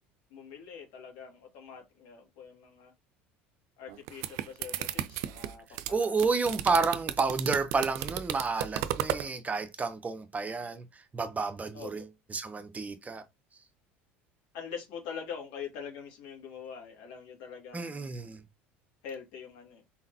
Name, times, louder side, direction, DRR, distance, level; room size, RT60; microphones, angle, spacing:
voice 1, 0.3-2.9 3.8-6.1 11.7-12.1 14.5-18.3 19.0-19.8, left 7 dB, 70° left, 2.2 m, -44 dB
sound 1, 3.9-9.3, right 12 dB, 65° right, 0.5 m, -34 dB
voice 2, 5.9-10.9 11.1-13.2 17.7-18.4, right 4 dB, 25° right, 0.7 m, -30 dB
4.3 x 3.8 x 2.8 m
hypercardioid pair, 75°, 6 cm